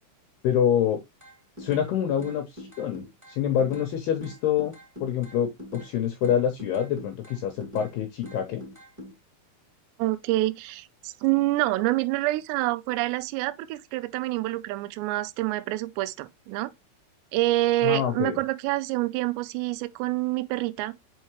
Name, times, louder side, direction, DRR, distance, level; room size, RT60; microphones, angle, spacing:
voice 1, 0.4-1.0 1.6-4.7 5.0-8.6 17.8-18.4, left 9 dB, 80° left, 2.4 m, -26 dB
sound 1, 1.2-1.9 2.2-3.9 4.2-5.9 6.2-7.9 8.2-9.1, left 1 dB, 5° right, 1.7 m, -43 dB
voice 2, 10.0-16.7 17.3-20.9, right 18 dB, 85° right, 2.6 m, -27 dB
5.7 x 5.5 x 3.0 m
omnidirectional pair, 5.6 m